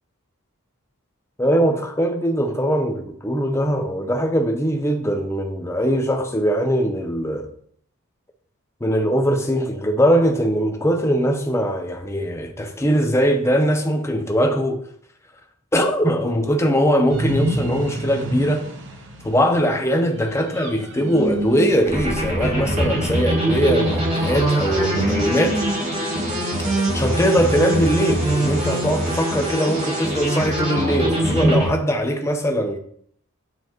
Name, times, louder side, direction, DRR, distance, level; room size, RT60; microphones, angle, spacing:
voice 1, 1.4-7.5 8.8-14.8 15.7-18.7 19.2-25.6 26.9-32.8, equal, 10° left, 0.7 m, -21 dB
sound 1, 17.1-28.5, right 1 dB, 55° right, 0.8 m, -30 dB
sound 2, 21.8-31.7, right 1 dB, 30° right, 2.2 m, -23 dB
9.2 x 5.3 x 3.0 m
head